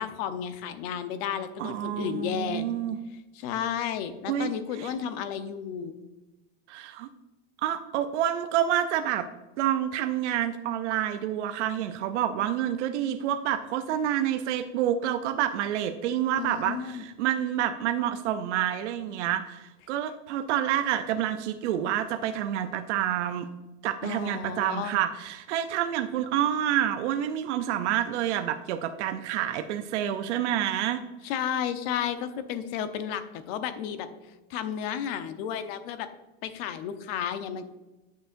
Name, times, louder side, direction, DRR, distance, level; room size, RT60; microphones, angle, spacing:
voice 1, 0.0-2.7 3.3-6.0 16.4-17.0 24.0-25.0 31.2-34.1 34.5-36.1 36.4-37.6, left 8 dB, 60° left, 10 dB, 0.9 m, -32 dB
voice 2, 1.6-3.0 4.3-4.5 4.8-4.9 6.7-7.1 7.6-9.3 9.6-23.5 23.8-31.0, right 11 dB, 85° right, 7 dB, 0.6 m, -28 dB
10.0 x 6.6 x 2.6 m, 1.1 s
supercardioid pair, 135°, 34 cm